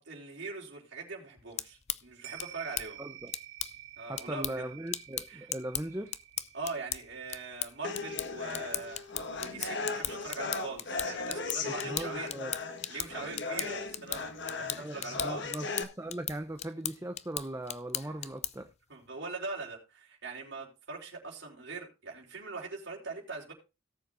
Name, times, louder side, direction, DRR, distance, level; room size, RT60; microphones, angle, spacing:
voice 1, 0.0-3.0 4.0-4.6 5.3-5.5 6.5-9.0 9.4-12.3 12.9-15.4 18.9-23.5, right 3 dB, 55° right, -3 dB, 4.1 m, -42 dB
sound 1, 1.4-18.7, left 11 dB, 30° left, 0.5 m, -39 dB
sound 2, 2.2-10.8 11.1-11.2, right 13 dB, 70° right, 3.8 m, -51 dB
voice 2, 3.0-3.3 4.1-6.1 11.8-12.5 14.6-18.7, right 1 dB, 15° right, 6 dB, 0.7 m, -39 dB
sound 3, 7.8-15.8, left 4 dB, 55° left, 1.6 m, -37 dB
18.0 x 7.5 x 2.6 m, 0.27 s
head